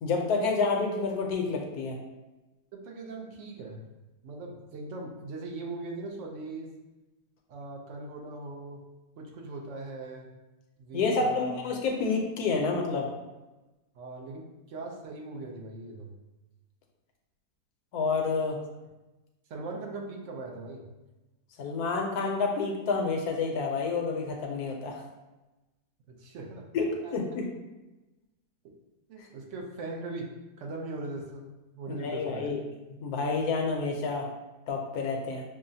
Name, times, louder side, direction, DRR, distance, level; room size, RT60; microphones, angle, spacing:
voice 1, 0.0-2.0 10.9-13.1 17.9-18.6 21.6-25.0 26.7-26.9 27.1-27.5 29.2-29.3 31.9-32.6 33.0-34.3 34.7-35.4, left 4 dB, 75° left, 1 dB, 1.1 m, -29 dB
voice 2, 2.7-3.8 4.2-6.7 7.5-8.8 9.2-10.3 10.8-11.6 13.9-16.1 19.5-20.8 26.1-27.1 29.1-30.3 30.6-31.5 31.7-32.5, right 2 dB, 65° right, 1 dB, 0.8 m, -40 dB
5.9 x 2.0 x 2.7 m, 1.1 s
omnidirectional pair, 1.7 m